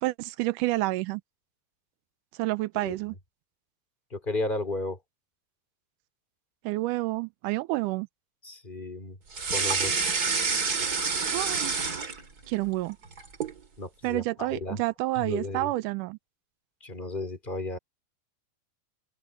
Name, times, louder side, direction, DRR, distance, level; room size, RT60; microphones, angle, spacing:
voice 1, 0.0-1.2 2.3-3.2 6.6-8.1 11.3-11.7 12.5-13.0 14.0-16.2, right 19 dB, 85° right, 1.9 m, -29 dB
voice 2, 4.1-5.0 8.4-9.2 9.5-10.0 13.8-14.8 15.1-15.7 16.8-17.8, left 2 dB, 15° left, 3.3 m, -33 dB
sound 1, 9.3-12.5 12.9-13.6, right 4 dB, 30° right, 2.1 m, -28 dB
omnidirectional pair, 4.3 m